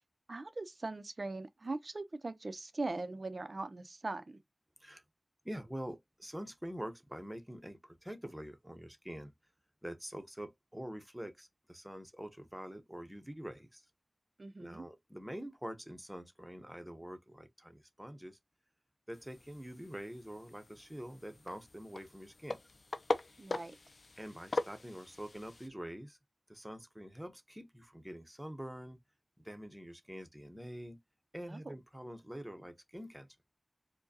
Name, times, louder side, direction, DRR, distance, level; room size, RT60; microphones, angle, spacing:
voice 1, 0.3-4.4 14.4-14.8 23.4-23.8 31.5-31.6, right 2 dB, 60° right, 0.6 m, -40 dB
voice 2, 5.4-9.3 9.8-13.9 14.6-18.4 19.1-22.6 24.2-26.2 26.5-29.0 29.4-31.0 31.3-33.3, equal, 10° right, 0.8 m, -46 dB
sound 1, 19.1-25.7, left 3 dB, 80° left, 0.4 m, -41 dB
4.6 x 2.2 x 2.7 m
wide cardioid pair, 70°, 0 cm